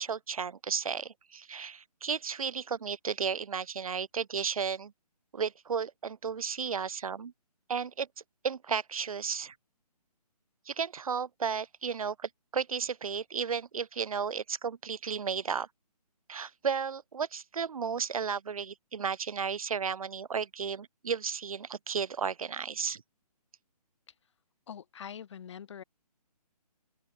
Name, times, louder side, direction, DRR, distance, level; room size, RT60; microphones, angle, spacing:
voice 1, 0.0-4.9 5.3-7.3 7.7-8.1 8.4-9.5 10.7-15.7 16.3-23.0, right 6 dB, 60° right, 1.2 m, -33 dB
voice 2, 24.7-25.8, left 8 dB, 45° left, 1.6 m, -44 dB
open air
figure-of-eight pair, 145°, 21 cm